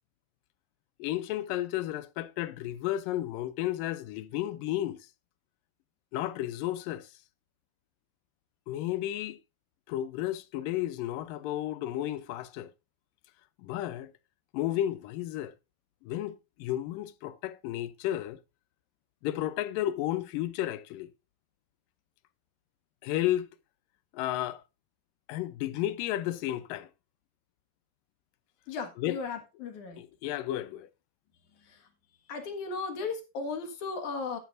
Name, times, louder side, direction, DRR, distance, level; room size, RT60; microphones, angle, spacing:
voice 1, 1.0-5.0 6.1-7.1 8.7-9.4 9.9-12.7 13.6-14.1 14.5-15.5 16.0-18.4 19.2-21.1 23.0-23.5 24.1-24.6 25.3-26.9 29.0-29.2 30.0-30.9, left 13 dB, 80° left, 2.2 m, -32 dB
voice 2, 28.7-30.0 31.7-31.8 32.3-34.4, left 4 dB, 60° left, 2.9 m, -36 dB
12.0 x 10.5 x 2.5 m
omnidirectional pair, 4.1 m